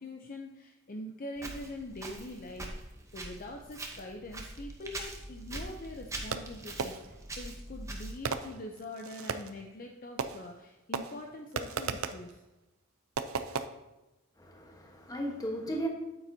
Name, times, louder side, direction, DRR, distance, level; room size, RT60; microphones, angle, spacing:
voice 1, 0.0-12.4, left 1 dB, 40° left, 2 dB, 0.6 m, -44 dB
Walk footsteps, 1.4-8.4, right 2 dB, 15° right, 0.8 m, -43 dB
Fireworks, 6.3-7.3 8.2-9.6 10.2-10.7 10.9-12.3 13.2-13.7, right 5 dB, 75° right, 0.5 m, -36 dB
voice 2, 14.4-15.9, right 1 dB, 15° left, 1 dB, 1.2 m, -35 dB
8.8 x 8.6 x 2.8 m, 1.0 s
head